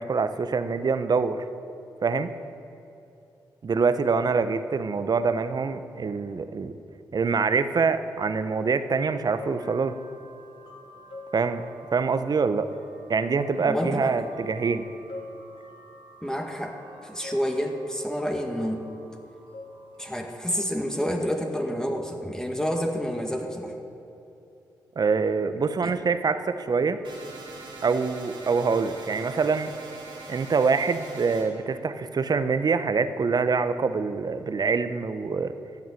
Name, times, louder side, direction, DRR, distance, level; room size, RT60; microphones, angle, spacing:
voice 1, 0.0-1.4 2.0-2.3 3.6-6.8 7.1-10.0 11.3-11.6 11.9-12.7 13.1-14.9 25.0-27.0 27.8-29.7 30.3-35.5, right 5 dB, 50° right, 11 dB, 0.8 m, -25 dB
sound 1, 9.3-20.4, left 1 dB, 70° left, 2.1 m, -45 dB
voice 2, 13.6-14.1 16.2-16.8 17.0-18.9 20.0-23.7 25.8-25.9, equal, 5° left, 2 dB, 1.8 m, -29 dB
sound 2, 27.0-31.4, right 3 dB, 70° right, 3.1 m, -42 dB
14.5 x 6.1 x 9.1 m, 2.8 s
hypercardioid pair, 40°, 9 cm